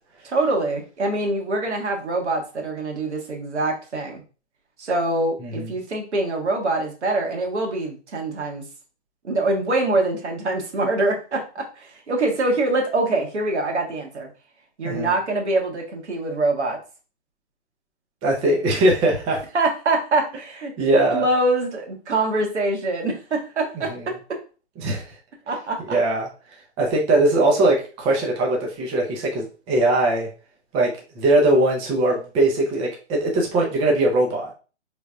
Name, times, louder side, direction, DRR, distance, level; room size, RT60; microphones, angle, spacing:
voice 1, 0.2-4.2 4.8-8.6 9.2-14.3 14.8-16.8 19.5-20.7 21.1-24.2 25.5-26.0, right 2 dB, 75° right, 1 dB, 1.3 m, -24 dB
voice 2, 5.4-5.7 14.8-15.1 18.2-19.4 20.8-21.2 23.7-24.1 24.8-25.2 25.9-26.3 26.8-30.3 30.7-34.5, right 2 dB, 15° right, -1 dB, 0.5 m, -21 dB
3.9 x 3.3 x 2.3 m, 0.35 s
hypercardioid pair, 130°, 35 cm